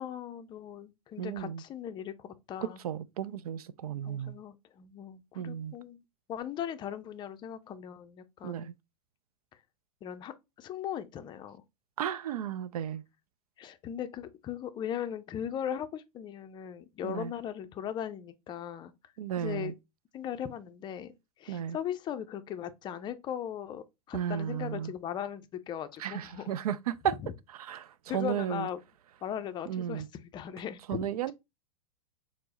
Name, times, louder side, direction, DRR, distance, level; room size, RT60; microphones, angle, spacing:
voice 1, 0.0-2.8 4.0-6.0 6.3-8.7 10.0-11.6 13.6-18.9 19.3-19.7 20.1-21.1 21.4-26.5 27.2-27.3 28.1-28.8 29.2-31.0, left 9 dB, 25° left, 0.4 m, -38 dB
voice 2, 1.2-1.6 2.6-4.3 5.4-5.7 8.4-8.7 12.0-13.0 17.0-17.3 19.2-19.7 21.5-21.8 24.1-24.9 26.0-27.2 27.6-28.7 29.7-30.1 30.9-31.3, right 9 dB, 75° right, 0.4 m, -34 dB
4.6 x 2.0 x 3.8 m
hypercardioid pair, 110°, 19 cm